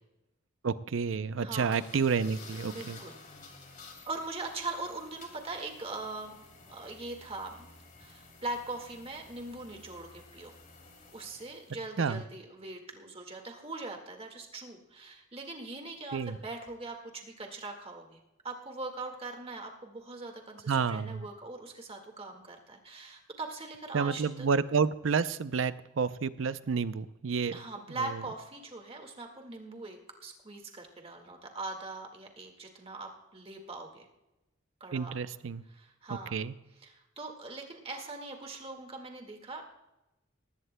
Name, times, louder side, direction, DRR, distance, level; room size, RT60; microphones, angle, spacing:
voice 1, 0.6-3.0 12.0-12.2 16.1-16.4 20.7-21.3 23.9-27.6 28.0-28.1 34.9-35.6 36.3-36.5, right 5 dB, 90° right, 15 dB, 0.5 m, -30 dB
voice 2, 1.4-1.7 2.5-3.1 4.1-6.4 6.6-7.7 8.0-10.5 11.1-18.2 18.4-24.5 27.5-34.1 34.8-35.2 35.7-36.4 36.8-39.6, right 2 dB, 30° right, 3 dB, 1.8 m, -41 dB
sound 1, 1.7-11.8, left 4 dB, 45° left, 2.9 m, -53 dB
19.0 x 15.5 x 2.2 m, 0.97 s
head